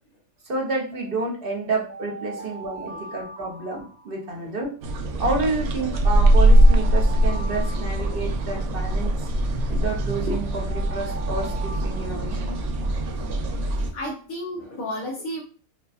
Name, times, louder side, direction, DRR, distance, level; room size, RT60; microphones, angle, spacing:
voice 1, 0.5-4.7 5.2-9.3 9.7-12.6, right 3 dB, 45° right, -1 dB, 1.0 m, -29 dB
Alarm, 0.9-4.6 5.3-9.0 9.7-12.9, right 3 dB, 45° left, 0.6 m, -42 dB
sound 1, 4.8-13.9, right 1 dB, 70° right, 0.9 m, -21 dB
voice 2, 12.0-12.3 13.7-15.4, equal, 80° left, -5 dB, 1.4 m, -34 dB
5.7 x 2.3 x 2.4 m, 0.39 s
omnidirectional pair, 1.4 m